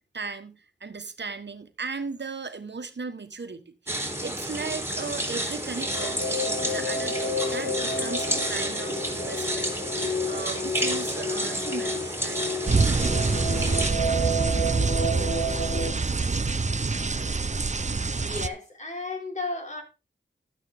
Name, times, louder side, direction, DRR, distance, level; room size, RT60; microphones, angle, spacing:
voice 1, 0.1-3.7 4.2-12.5, right 4 dB, 65° right, 1.4 m, -37 dB
sound 1, 3.9-13.9, right 1 dB, 10° right, 3.1 m, -31 dB
sound 2, 5.2-15.9, left 1 dB, 90° left, 3.1 m, -31 dB
sound 3, 12.7-18.5, right 4 dB, 35° right, 0.7 m, -25 dB
voice 2, 18.1-19.8, left 3 dB, 35° left, 4.0 m, -34 dB
12.5 x 9.0 x 3.6 m
wide cardioid pair, 60°, 20 cm